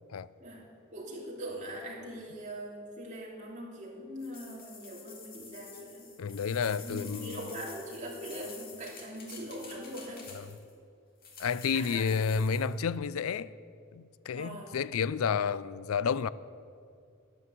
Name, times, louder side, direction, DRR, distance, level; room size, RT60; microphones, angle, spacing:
voice 1, 0.9-6.1 6.8-10.3 11.7-12.1 12.4-12.5 14.3-14.8, right 1 dB, 35° right, 2.9 m, -42 dB
sound 1, 4.2-10.7 11.2-12.7, left 5 dB, 45° left, 2.5 m, -49 dB
voice 2, 6.2-7.5 10.3-10.5 11.4-13.5 13.9-16.3, left 6 dB, 90° left, 0.4 m, -31 dB
11.5 x 11.0 x 8.2 m
head